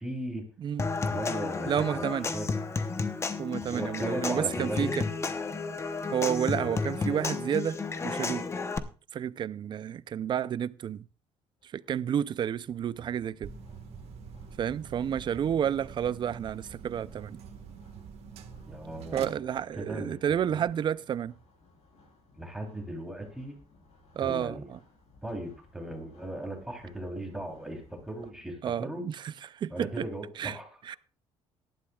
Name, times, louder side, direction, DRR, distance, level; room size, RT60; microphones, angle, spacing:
voice 1, 0.0-0.5 1.0-2.5 3.6-5.0 18.7-19.5 19.8-20.2 20.5-20.7 22.4-23.6 24.2-24.7 25.2-29.0 29.7-30.7, right 1 dB, 5° right, 3.3 m, -37 dB
Human voice / Acoustic guitar / Percussion, 0.8-8.8, left 4 dB, 25° left, 0.9 m, -32 dB
voice 2, 1.7-2.3 3.4-5.0 6.1-7.8 8.0-8.5 9.1-11.0 11.6-13.5 14.6-17.4 19.1-21.3 24.2-24.8 28.6-30.1 30.4-30.6 30.8-31.0, right 9 dB, 45° right, 0.5 m, -30 dB
sound 1, 11.6-28.3, left 3 dB, 70° left, 6.3 m, -59 dB
sound 2, 13.4-19.2, right 6 dB, 70° right, 1.5 m, -45 dB
17.5 x 12.0 x 2.3 m
cardioid pair, 115°, 11 cm